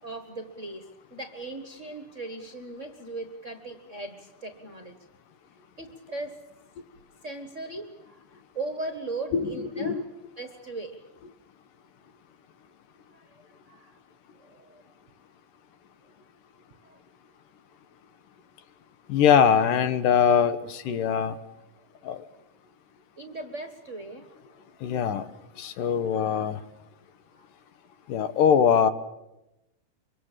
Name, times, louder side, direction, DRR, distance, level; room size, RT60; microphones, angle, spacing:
voice 1, 0.0-4.9 5.8-6.4 7.2-8.2 8.5-10.0 10.4-11.0 13.1-14.0 14.4-14.8 16.8-17.0 23.2-24.6 26.0-26.4 27.3-27.5, right 2 dB, 35° right, 7 dB, 1.2 m, -38 dB
voice 2, 9.3-10.0 19.1-21.4 22.0-22.2 24.8-25.2 25.6-26.6 28.1-28.9, left 7 dB, 80° left, 12 dB, 2.8 m, -22 dB
25.5 x 24.5 x 7.5 m, 0.91 s
omnidirectional pair, 3.8 m